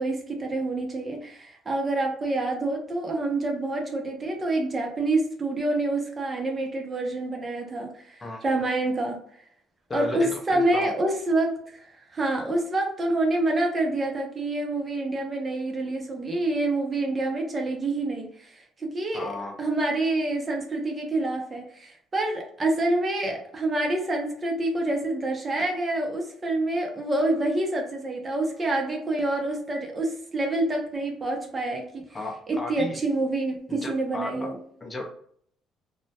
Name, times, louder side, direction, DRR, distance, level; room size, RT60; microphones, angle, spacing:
voice 1, 0.0-8.2 8.4-9.2 9.9-19.3 19.6-32.0 32.5-34.6, right 2 dB, 30° right, 2 dB, 0.5 m, -27 dB
voice 2, 9.9-10.9 19.1-19.6 32.1-33.0 33.7-34.3 34.8-35.0, left 2 dB, 25° left, 0 dB, 0.6 m, -34 dB
2.2 x 2.1 x 2.7 m, 0.62 s
cardioid pair, 105°, 0 cm